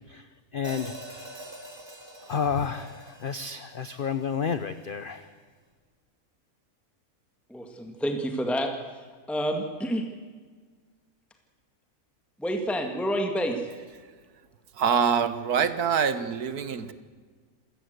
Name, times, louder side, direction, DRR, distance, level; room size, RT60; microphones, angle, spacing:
voice 1, 0.5-0.9 2.3-5.3, left 6 dB, 45° left, 12 dB, 0.9 m, -30 dB
Hi-hat, 0.6-4.8, right 1 dB, 15° right, 2.0 m, -45 dB
voice 2, 7.5-9.0 9.3-10.0 12.4-13.6, equal, ahead, 4 dB, 1.9 m, -28 dB
voice 3, 14.7-16.9, right 7 dB, 85° right, 12 dB, 1.8 m, -25 dB
27.0 x 16.5 x 8.1 m, 1.6 s
omnidirectional pair, 1.6 m